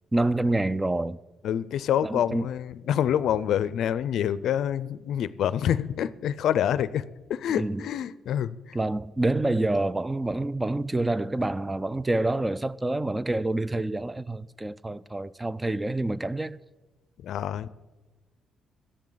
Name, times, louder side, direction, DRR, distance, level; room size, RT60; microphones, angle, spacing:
voice 1, 0.1-1.2 2.0-2.5 7.6-7.8 8.7-16.6, right 2 dB, 15° right, 0.3 m, -27 dB
voice 2, 1.4-7.0 7.3-8.8 17.2-17.7, left 10 dB, 75° left, 0.4 m, -27 dB
17.5 x 11.5 x 3.9 m
cardioid pair, 90°, 0 cm